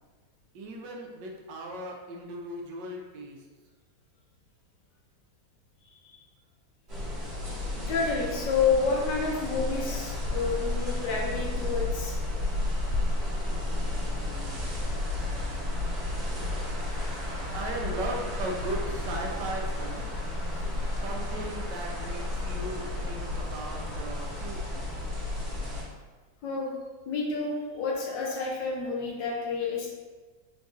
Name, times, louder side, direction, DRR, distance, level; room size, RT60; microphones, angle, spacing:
voice 1, 0.5-3.4 17.5-20.1 20.9-24.9, right 1 dB, 80° right, 0 dB, 1.2 m, -37 dB
sound 1, 6.9-25.8, left 2 dB, 40° right, 1.4 m, -32 dB
voice 2, 7.9-12.2 26.4-26.7 27.1-29.9, left 4 dB, 85° left, -3 dB, 1.5 m, -29 dB
4.0 x 2.6 x 3.5 m, 1.3 s
omnidirectional pair, 1.9 m